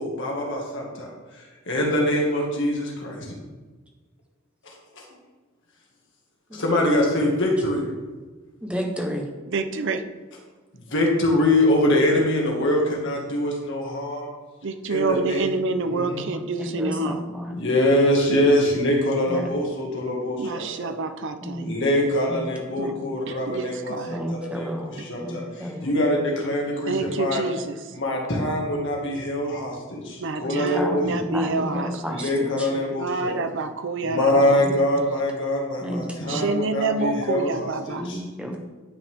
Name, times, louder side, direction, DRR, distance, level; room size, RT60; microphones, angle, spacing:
voice 1, 0.0-3.4 4.6-5.0 6.5-7.9 10.9-14.3 14.9-15.5 15.9-16.2 17.6-20.9 21.6-27.4 27.9-31.2 32.1-33.4 34.0-38.2, left 1 dB, 60° left, -1 dB, 2.0 m, -24 dB
voice 2, 8.6-9.3 16.6-17.6 19.3-19.5 21.4-21.7 22.3-22.4 22.8-23.0 24.1-25.9 28.3-28.4 30.5-32.3 32.6-32.7 34.6-34.7 35.8-36.4 37.9-38.6, equal, 5° right, 1 dB, 1.1 m, -31 dB
voice 3, 9.5-10.0 14.6-17.2 20.4-21.8 22.8-22.9 23.3-24.2 25.0-25.1 26.9-27.8 30.2-32.3 33.0-34.6 36.3-38.1, right 3 dB, 60° right, 8 dB, 0.7 m, -28 dB
10.5 x 6.2 x 3.6 m, 1.3 s
head